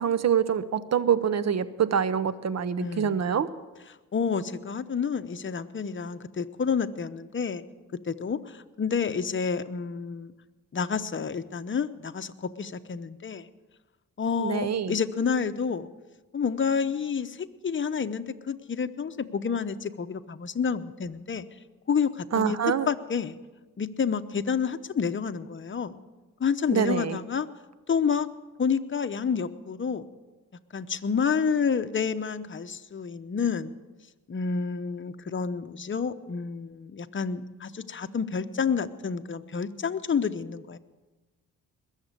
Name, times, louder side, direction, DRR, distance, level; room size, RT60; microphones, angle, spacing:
voice 1, 0.0-3.5 14.4-14.9 22.3-22.9 26.7-27.2, right 8 dB, 55° right, 15 dB, 0.8 m, -25 dB
voice 2, 2.8-3.2 4.1-7.6 8.1-10.3 10.7-13.5 14.2-15.9 16.3-21.4 21.9-22.6 22.9-23.4 23.8-26.0 26.4-27.5 27.9-28.3 28.6-30.0 30.7-33.8 34.3-40.8, left 6 dB, 35° left, 10 dB, 0.9 m, -29 dB
21.0 x 7.4 x 6.7 m, 1.2 s
cardioid pair, 65°, 33 cm